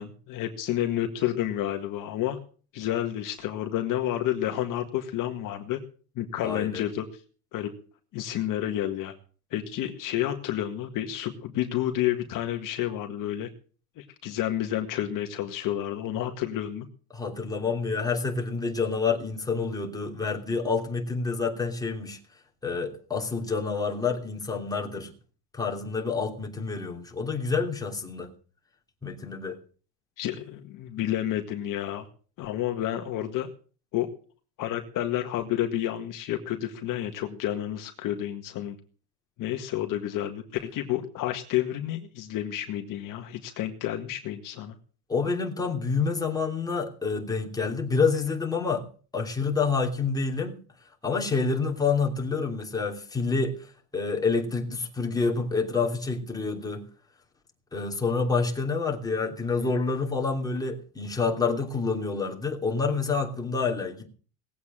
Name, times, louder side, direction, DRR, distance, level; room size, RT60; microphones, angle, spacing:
voice 1, 0.0-2.4 2.7-5.8 6.2-7.2 7.5-7.7 8.1-9.1 9.5-13.5 14.0-16.9 30.2-32.1 32.4-33.5 33.9-34.1 34.6-38.8 39.4-40.4 40.7-44.7, left 12 dB, 45° left, 1.8 m, -30 dB
voice 2, 6.4-6.8 17.1-22.2 22.6-25.1 25.5-28.3 29.0-29.6 45.1-48.8 49.1-50.6 51.0-56.8 57.7-64.1, left 4 dB, 10° left, 3.0 m, -28 dB
19.0 x 8.4 x 7.5 m
cardioid pair, 145°, 44 cm